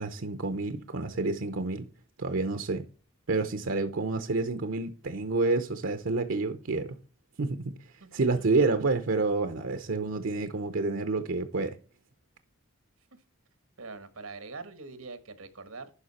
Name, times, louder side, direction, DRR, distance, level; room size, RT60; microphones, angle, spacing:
voice 1, 0.0-1.9 2.2-2.8 3.3-6.9 7.4-7.7 8.1-11.8, right 3 dB, 70° right, 0.7 m, -29 dB
voice 2, 8.0-8.5 13.8-15.9, right 4 dB, 90° right, 1.3 m, -43 dB
11.5 x 4.9 x 4.2 m
head